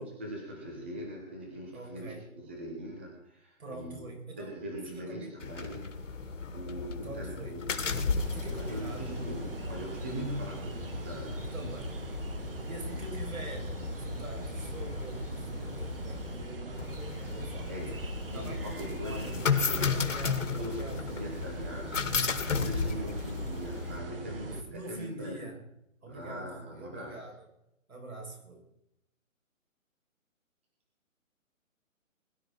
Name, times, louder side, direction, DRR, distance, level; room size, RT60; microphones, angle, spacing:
voice 1, 0.0-4.0 4.4-6.2 6.5-7.8 8.1-11.5 12.3-12.7 17.7-18.0 18.3-20.0 20.4-25.4 26.1-27.2, equal, 10° right, 0 dB, 1.0 m, -41 dB
voice 2, 1.7-2.2 3.6-4.6 4.8-5.3 7.0-7.6 8.3-9.1 11.4-11.9 12.7-17.8 18.3-18.6 19.0-19.4 19.9-21.2 22.9-23.2 24.4-25.6 26.0-27.5 27.9-28.6, right 2 dB, 80° right, 1 dB, 7.8 m, -44 dB
sound 1, 5.4-24.0, left 5 dB, 65° left, 2.3 m, -35 dB
sound 2, 8.2-24.6, right 2 dB, 40° right, 1.9 m, -41 dB
21.5 x 12.0 x 4.5 m, 0.80 s
hypercardioid pair, 175°, 41 cm